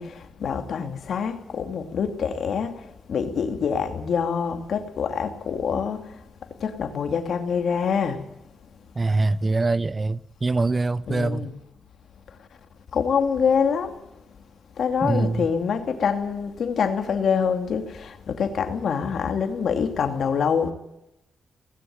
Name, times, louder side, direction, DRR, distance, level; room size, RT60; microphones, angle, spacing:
voice 1, 0.0-2.7 3.1-6.0 6.6-8.2 11.1-11.5 12.9-13.9 14.8-20.7, left 6 dB, 65° left, 2.6 m, -25 dB
voice 2, 9.0-11.5 15.0-15.5, right 3 dB, 25° right, 0.6 m, -24 dB
18.5 x 16.0 x 8.9 m
cardioid pair, 110°, 0 cm